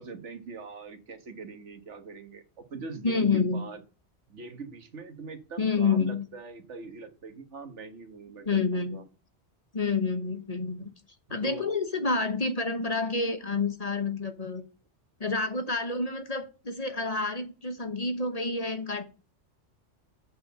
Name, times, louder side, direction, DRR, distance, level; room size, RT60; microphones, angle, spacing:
voice 1, 0.0-3.8 4.3-9.0 11.4-11.7, right 4 dB, 80° right, 8 dB, 1.7 m, -42 dB
voice 2, 3.0-3.6 5.6-6.2 8.4-9.0 9.7-10.9 11.3-14.6 15.2-19.0, left 4 dB, 35° left, 8 dB, 1.1 m, -28 dB
8.6 x 4.8 x 6.7 m, 0.34 s
omnidirectional pair, 1.2 m